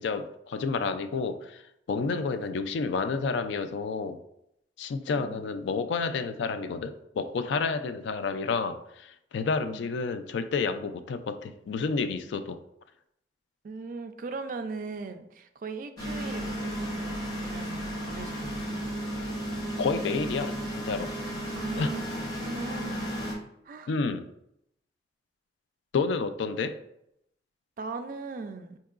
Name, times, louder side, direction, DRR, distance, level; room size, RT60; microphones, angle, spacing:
voice 1, 0.0-1.6 1.9-4.2 4.8-12.6 19.8-20.6 20.8-21.1 21.8-21.9 23.9-24.3 25.9-26.7, left 4 dB, 80° left, 9 dB, 0.3 m, -30 dB
voice 2, 2.0-2.4 5.1-5.6 9.6-9.9 13.6-18.9 21.6-23.1 23.6-23.9 27.8-28.8, right 4 dB, 50° right, 8 dB, 0.3 m, -39 dB
sound 1, 16.0-23.3, equal, 20° left, 0.8 m, -34 dB
4.5 x 2.8 x 2.4 m, 0.78 s
head